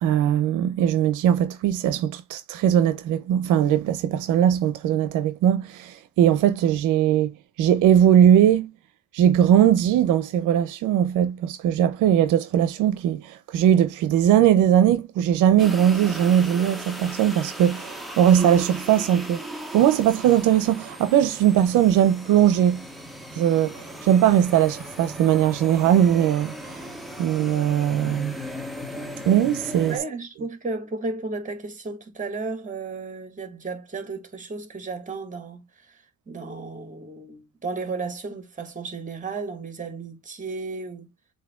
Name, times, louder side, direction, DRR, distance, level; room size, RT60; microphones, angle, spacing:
voice 1, 0.0-8.7 9.1-19.4 19.7-22.8 23.3-26.9 27.2-28.4 29.3-30.0, right 10 dB, 85° right, 0.6 m, -20 dB
sound 1, 15.6-30.0, equal, ahead, 0.9 m, -37 dB
voice 2, 29.9-41.1, right 3 dB, 25° right, 1.5 m, -34 dB
7.5 x 2.7 x 2.3 m
cardioid pair, 90°, 30 cm